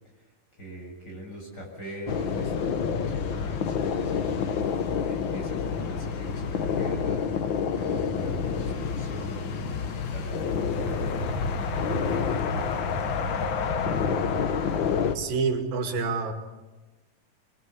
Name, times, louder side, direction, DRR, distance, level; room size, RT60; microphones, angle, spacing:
voice 1, 0.1-4.3 5.1-11.1 11.7-13.8, equal, 30° left, 0 dB, 7.6 m, -42 dB
sound 1, 2.1-15.2, left 6 dB, 75° left, 1.1 m, -28 dB
sound 2, 8.2-15.3, left 1 dB, 45° left, 4.3 m, -36 dB
voice 2, 15.2-16.3, right 4 dB, 85° right, 5 dB, 3.8 m, -27 dB
23.5 x 23.5 x 8.3 m, 1.2 s
omnidirectional pair, 4.0 m